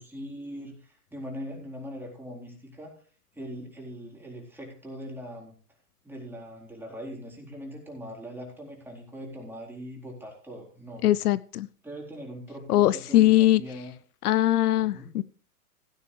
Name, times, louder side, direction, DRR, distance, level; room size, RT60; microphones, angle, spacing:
voice 1, 0.0-2.9 3.3-5.6 6.0-11.2 11.8-13.9 14.8-15.1, equal, 5° right, -2 dB, 4.1 m, -41 dB
voice 2, 11.0-11.7 12.7-13.6 14.2-15.2, left 14 dB, 75° left, 19 dB, 0.6 m, -21 dB
15.5 x 9.9 x 3.3 m, 0.41 s
hypercardioid pair, 115°, 46 cm